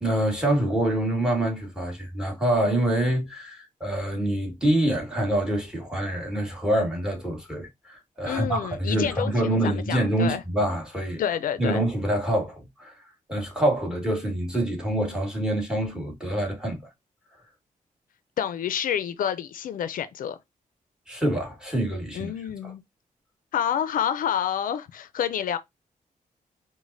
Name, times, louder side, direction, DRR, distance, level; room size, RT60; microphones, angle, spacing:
voice 1, 0.0-11.2 11.6-12.9 13.3-16.8 21.1-22.3 22.6-22.7, right 1 dB, 5° right, 1.5 m, -26 dB
voice 2, 8.2-10.4 11.2-11.8 18.4-20.4 22.1-22.8 23.5-25.6, left 9 dB, 75° left, 0.4 m, -28 dB
5.0 x 2.1 x 2.5 m
cardioid pair, 90°, 14 cm